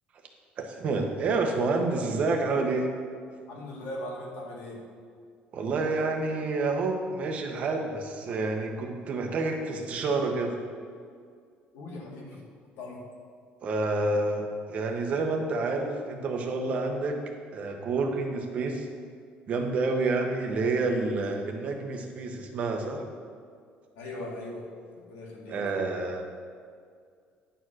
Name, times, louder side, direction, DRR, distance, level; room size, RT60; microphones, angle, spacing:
voice 1, 0.6-2.9 5.5-10.6 13.6-17.2 17.5-18.9 19.5-23.0 25.5-26.2, right 3 dB, 35° right, 3 dB, 0.9 m, -28 dB
voice 2, 3.5-4.8 11.7-12.4 12.8-13.0 24.0-24.7 25.0-25.6, left 1 dB, 85° left, -2 dB, 2.0 m, -39 dB
10.0 x 4.7 x 6.2 m, 2.1 s
cardioid pair, 175°, 4 cm